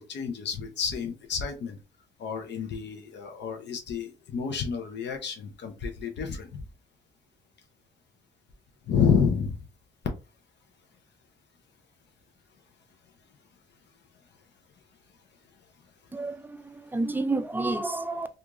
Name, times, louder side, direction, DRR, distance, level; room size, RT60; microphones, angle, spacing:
voice 1, 0.0-1.8 2.2-6.6 8.9-9.6, left 6 dB, 60° left, 0.6 m, -29 dB
voice 2, 16.1-18.3, right 2 dB, 10° right, 0.3 m, -30 dB
2.8 x 2.4 x 2.4 m
cardioid pair, 90°, 20 cm